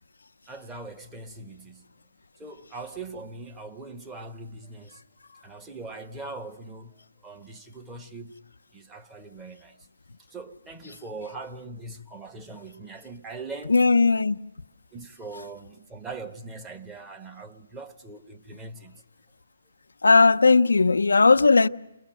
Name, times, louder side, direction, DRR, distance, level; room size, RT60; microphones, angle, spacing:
voice 1, 0.5-1.9 2.4-5.0 5.4-8.4 8.7-9.7 10.3-13.7 14.9-19.0, right 3 dB, 10° right, 1.4 m, -41 dB
voice 2, 13.7-14.4 20.0-21.7, left 4 dB, 85° left, 0.8 m, -17 dB
29.5 x 22.0 x 7.7 m
hypercardioid pair, 155°, 0 cm